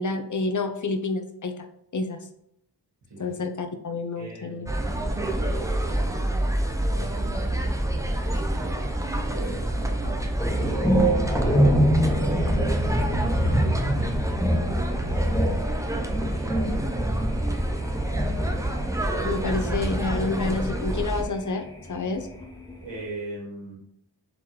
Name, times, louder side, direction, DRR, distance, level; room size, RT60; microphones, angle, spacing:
voice 1, 0.0-1.7 1.9-2.2 3.2-4.7 19.2-22.3, left 3 dB, 45° left, 7 dB, 0.6 m, -29 dB
voice 2, 4.2-7.7 8.5-11.8 12.2-14.2 15.0-15.7 16.1-17.0 22.8-23.8, right 2 dB, 90° right, -4 dB, 1.8 m, -39 dB
sound 1, 4.7-21.2, right 1 dB, 10° right, 0.5 m, -28 dB
sound 2, 10.4-21.2 21.5-22.7, equal, 10° left, 0.9 m, -25 dB
3.9 x 3.1 x 4.4 m, 0.76 s
wide cardioid pair, 60°, 43 cm